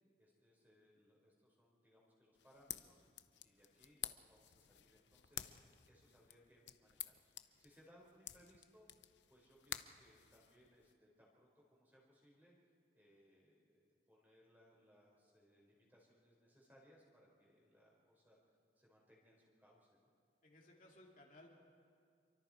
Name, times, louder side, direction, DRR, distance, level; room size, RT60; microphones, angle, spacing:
voice 1, 0.2-3.0 3.4-8.9 9.3-12.5 12.9-18.4 18.7-20.1, equal, 10° right, -3 dB, 5.0 m, -69 dB
sound 1, 2.3-10.9, left 12 dB, 90° left, 0.8 m, -52 dB
voice 2, 20.4-21.5, left 1 dB, 50° left, -2 dB, 2.7 m, -61 dB
28.5 x 24.0 x 4.6 m, 2.2 s
head